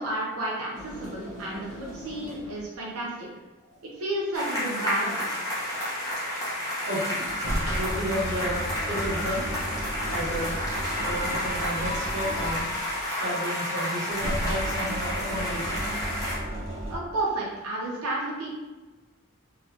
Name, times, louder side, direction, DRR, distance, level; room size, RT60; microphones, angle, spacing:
voice 1, 0.0-3.3 3.8-5.4 16.9-18.5, right 1 dB, 90° right, -4 dB, 0.8 m, -31 dB
sound 1, 0.7-2.7 7.2-13.0 14.1-16.9, equal, 75° left, 1.2 m, -34 dB
sound 2, 4.3-16.4, left 1 dB, 15° left, 1.0 m, -31 dB
voice 2, 6.5-7.4 7.7-9.5 10.1-10.5 11.1-12.6 13.2-15.8, equal, 55° right, -4 dB, 1.0 m, -32 dB
4.0 x 3.1 x 2.8 m, 1.2 s
head